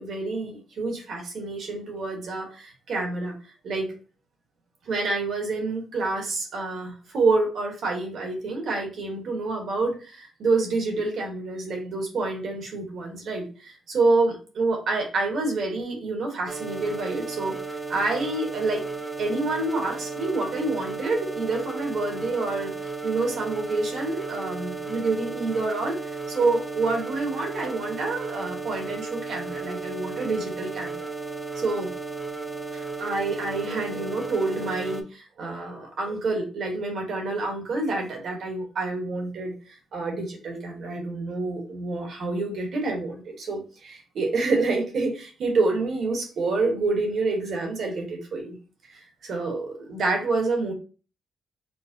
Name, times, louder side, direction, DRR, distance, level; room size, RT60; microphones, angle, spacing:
voice 1, 0.0-3.4 3.6-3.9 4.9-17.5 17.9-18.8 19.2-31.1 31.5-31.9 32.7-48.6 48.9-50.7, right 3 dB, 65° right, 2 dB, 1.2 m, -28 dB
sound 1, 16.5-35.0, right 4 dB, 15° right, 0.5 m, -34 dB
4.7 x 2.1 x 2.6 m, 0.35 s
cardioid pair, 90°, 0 cm